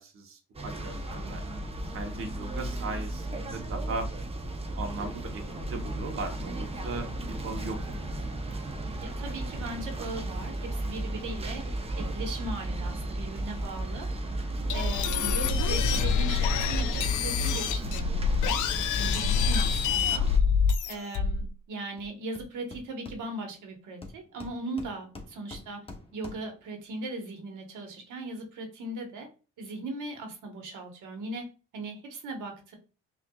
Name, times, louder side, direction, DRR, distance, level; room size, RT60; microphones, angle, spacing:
voice 1, 0.0-1.5 1.9-4.1 4.8-8.1 19.3-19.4, right 3 dB, 45° right, 3 dB, 0.9 m, -38 dB
sound 1, 0.5-20.4, right 1 dB, 20° right, 0.7 m, -34 dB
voice 2, 9.0-11.6 12.0-14.1 14.7-18.6 19.0-20.3 20.9-25.9 26.1-29.3 29.6-31.5 31.7-32.8, right 2 dB, 85° right, 3 dB, 1.1 m, -38 dB
sound 2, 14.7-21.5, left 6 dB, 80° left, 0.5 m, -26 dB
Hammer, 22.0-22.1 22.4-23.6 24.0-26.6, left 2 dB, 20° left, 0.9 m, -46 dB
5.7 x 2.5 x 2.3 m, 0.34 s
cardioid pair, 90°, 30 cm